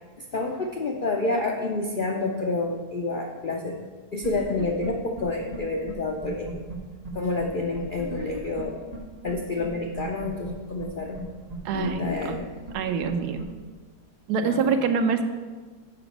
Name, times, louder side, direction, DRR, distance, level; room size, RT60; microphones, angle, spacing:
voice 1, 0.3-3.8 4.1-6.6 7.1-8.9 9.2-11.3 11.8-12.9 14.4-14.7, left 3 dB, 65° left, 1 dB, 0.5 m, -29 dB
sound 1, 4.2-4.9 5.2-5.3 5.5-5.6 5.9-6.0 6.2-6.8 7.0-7.1 7.4-7.5 7.7-8.6 8.9-9.0 9.3-9.4 9.6-9.7 10.0-10.5 10.8-10.9 11.1-11.2 11.5-12.4 12.7-12.8 13.0-13.1 13.4-13.5, right 1 dB, 25° right, 1.3 m, -36 dB
voice 2, 11.6-12.4 12.7-13.4 14.3-15.2, right 5 dB, 85° right, 7 dB, 1.2 m, -25 dB
7.1 x 6.0 x 5.1 m, 1.4 s
omnidirectional pair, 1.7 m